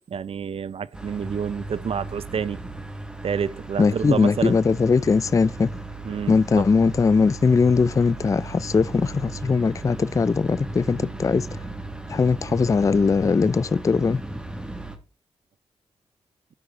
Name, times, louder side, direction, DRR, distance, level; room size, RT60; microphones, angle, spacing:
voice 1, 0.1-2.6 3.2-4.6 6.0-6.6 11.0-11.2, right 7 dB, 60° right, 0.5 m, -28 dB
sound 1, 0.9-15.0, right 2 dB, 10° right, 1.8 m, -36 dB
voice 2, 3.8-5.7 6.3-11.7 12.1-14.2, left 4 dB, 30° left, 0.3 m, -20 dB
12.5 x 4.6 x 3.7 m
supercardioid pair, 45°, 11 cm